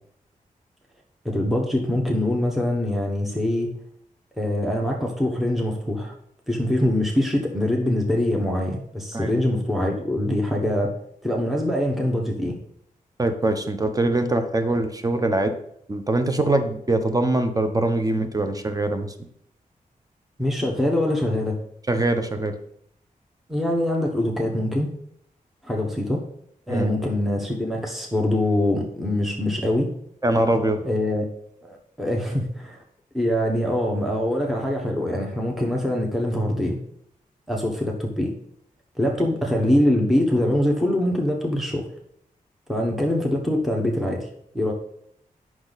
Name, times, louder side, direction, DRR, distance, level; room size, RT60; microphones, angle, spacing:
voice 1, 1.2-3.7 4.4-6.1 6.5-10.9 11.2-12.6 20.4-21.6 23.5-24.9 25.6-26.2 26.7-29.9 30.8-31.3 31.6-32.8 33.1-36.8 37.5-38.3 39.0-41.9 42.7-44.3 44.5-44.7, left 1 dB, ahead, 0 dB, 1.2 m, -23 dB
voice 2, 13.2-15.5 15.9-19.1 21.9-22.5 26.7-26.9 30.2-30.9, right 2 dB, 25° right, 7 dB, 1.0 m, -23 dB
8.6 x 6.2 x 4.1 m, 0.72 s
cardioid pair, 80°, 15 cm